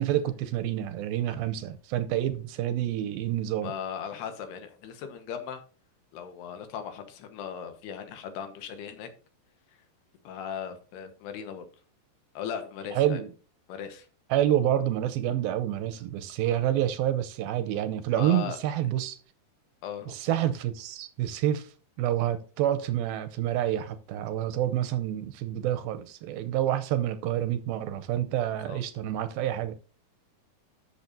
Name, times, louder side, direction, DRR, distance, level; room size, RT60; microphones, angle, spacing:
voice 1, 0.0-3.7 13.0-13.3 14.3-19.2 20.1-21.7 22.0-29.8, right 11 dB, 80° right, 2.4 m, -28 dB
voice 2, 3.6-5.6 6.1-9.1 9.7-9.8 10.2-11.7 12.3-13.2 13.7-14.1 18.1-18.6 19.8-20.2 28.7-28.8, left 8 dB, 90° left, 3.4 m, -38 dB
12.0 x 7.2 x 2.7 m
omnidirectional pair, 4.5 m